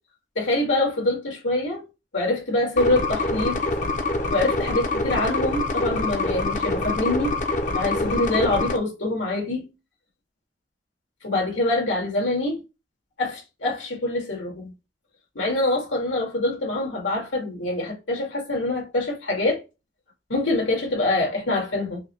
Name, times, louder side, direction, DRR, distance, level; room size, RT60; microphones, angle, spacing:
voice 1, 0.4-1.8 2.1-3.6 4.3-7.3 7.7-9.7 11.2-12.6 13.2-14.7 15.4-19.6 20.3-22.0, left 2 dB, 85° left, 2.1 m, -25 dB
sound 1, 2.8-8.8, left 2 dB, 40° left, 0.6 m, -25 dB
5.3 x 2.2 x 3.1 m
head